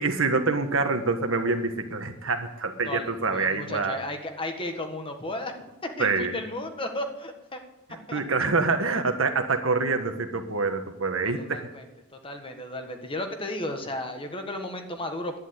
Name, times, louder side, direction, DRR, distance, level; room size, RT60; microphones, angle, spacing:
voice 1, 0.0-4.0 6.0-6.3 7.9-11.7, right 3 dB, 70° right, 6 dB, 1.4 m, -26 dB
voice 2, 2.8-7.6 8.1-8.2 11.2-11.8 12.1-15.4, left 1 dB, 25° left, 5 dB, 1.5 m, -34 dB
11.0 x 10.0 x 8.1 m, 0.98 s
head